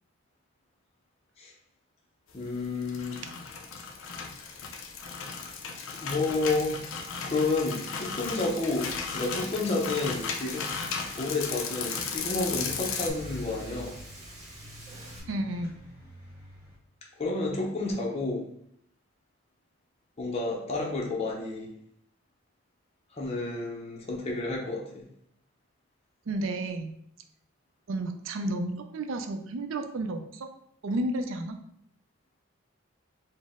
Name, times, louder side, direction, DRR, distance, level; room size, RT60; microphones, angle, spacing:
voice 1, 2.3-3.2 6.0-10.7 11.2-14.0 17.2-18.4 20.2-21.7 23.1-25.0, left 3 dB, 30° left, -1 dB, 0.5 m, -30 dB
sound 1, 2.6-13.1, left 5 dB, 85° left, 0.5 m, -35 dB
Frying (food), 7.3-15.2, right 1 dB, 35° right, 1.2 m, -49 dB
sound 2, 12.2-16.8, equal, 15° right, 1.2 m, -45 dB
voice 2, 15.3-15.7 26.3-26.9 27.9-30.5 30.8-31.6, right 1 dB, 75° right, 7 dB, 0.4 m, -32 dB
4.1 x 2.1 x 3.5 m, 0.69 s
head